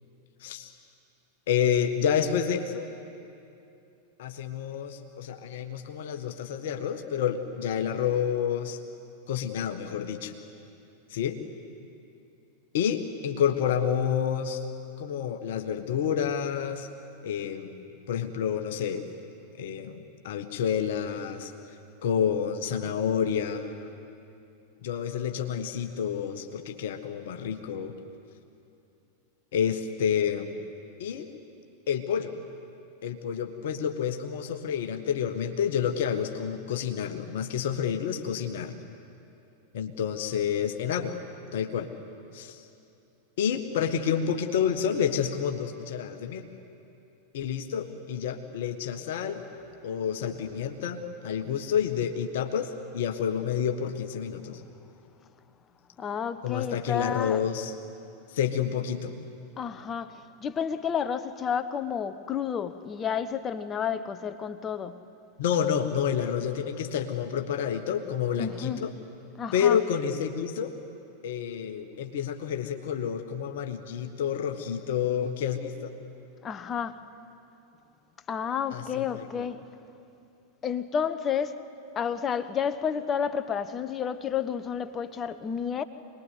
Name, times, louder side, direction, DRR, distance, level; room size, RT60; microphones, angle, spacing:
voice 1, 1.5-2.9 4.2-8.8 9.3-10.3 11.1-11.4 12.7-14.6 15.0-16.9 17.2-19.0 19.6-21.5 22.0-23.9 24.8-27.9 29.5-30.5 31.0-31.3 31.9-32.3 33.0-38.7 39.7-41.2 41.5-41.9 42.3-42.6 43.4-46.4 47.3-49.4 49.8-54.6 56.4-57.7 58.3-59.1 65.4-68.9 69.5-70.7 71.2-75.9 78.7-79.5, left 8 dB, 55° left, 1.5 m, -29 dB
voice 2, 56.0-57.4 59.6-65.0 68.4-68.8 69.4-69.8 76.4-77.0 78.3-79.7 80.6-81.6 81.9-85.8, left 7 dB, 25° left, 1.1 m, -31 dB
25.5 x 20.5 x 9.5 m
figure-of-eight pair, 90°, 0 cm